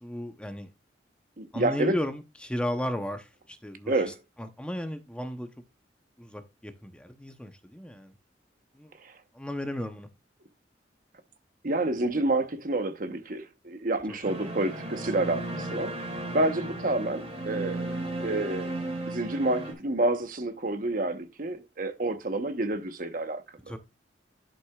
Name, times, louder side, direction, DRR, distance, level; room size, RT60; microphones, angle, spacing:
voice 1, 0.0-0.7 1.5-5.5 6.2-8.1 8.7-8.9 9.3-10.1 14.1-14.2 16.3-16.5 23.7-23.8, equal, 5° left, 0.7 m, -35 dB
voice 2, 1.4-1.9 3.9-4.2 9.0-9.1 11.6-18.7 19.1-23.4, right 2 dB, 50° right, 1.0 m, -29 dB
sound 1, 14.2-19.7, right 1 dB, 35° right, 2.6 m, -35 dB
11.5 x 6.0 x 2.4 m
head